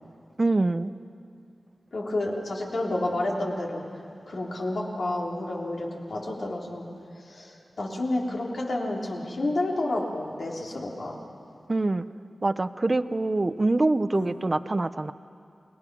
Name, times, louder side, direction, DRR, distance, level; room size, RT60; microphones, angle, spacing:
voice 1, 0.4-0.9 11.7-12.1 12.4-15.1, right 2 dB, 35° right, 13 dB, 0.6 m, -25 dB
voice 2, 1.9-3.8 4.3-6.8 7.2-11.2 14.1-14.3, left 1 dB, 75° left, -2 dB, 3.4 m, -30 dB
29.5 x 20.0 x 6.2 m, 2.5 s
wide cardioid pair, 70°, 0 cm